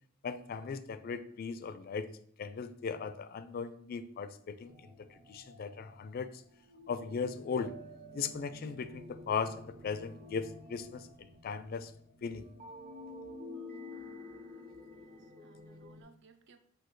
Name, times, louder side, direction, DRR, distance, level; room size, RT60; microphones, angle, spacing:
voice 1, 0.2-2.1 2.4-6.4 6.9-7.7 8.1-11.9 12.2-12.5, left 5 dB, 50° left, 12 dB, 0.3 m, -38 dB
sound 1, 4.7-16.0, left 1 dB, 45° right, 0.9 m, -50 dB
voice 2, 14.9-16.6, right 3 dB, 65° right, 8 dB, 0.5 m, -61 dB
6.0 x 2.7 x 3.1 m, 0.64 s
head